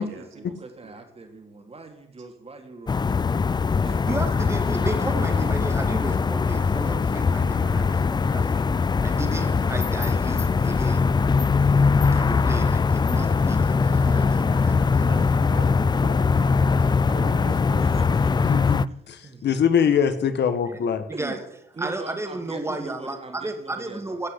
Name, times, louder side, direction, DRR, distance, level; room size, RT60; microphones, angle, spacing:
voice 1, 0.0-3.1 3.8-4.0 17.0-17.1 17.5-18.2 18.9-19.0 19.2-19.5 21.1-21.3 21.7-24.3, right 3 dB, 30° right, 4 dB, 3.2 m, -41 dB
sound 1, 2.9-18.9, left 5 dB, 20° left, 0.4 m, -21 dB
voice 2, 4.1-8.6 9.0-11.1 12.0-15.0 15.5-15.6 21.1-21.4 21.8-24.3, right 2 dB, 15° right, 6 dB, 2.1 m, -33 dB
voice 3, 14.9-18.2, right 4 dB, 75° right, 2 dB, 3.5 m, -41 dB
voice 4, 18.4-21.0, left 7 dB, 60° left, 10 dB, 1.5 m, -23 dB
16.5 x 6.4 x 8.2 m, 0.78 s
cardioid pair, 90°, 20 cm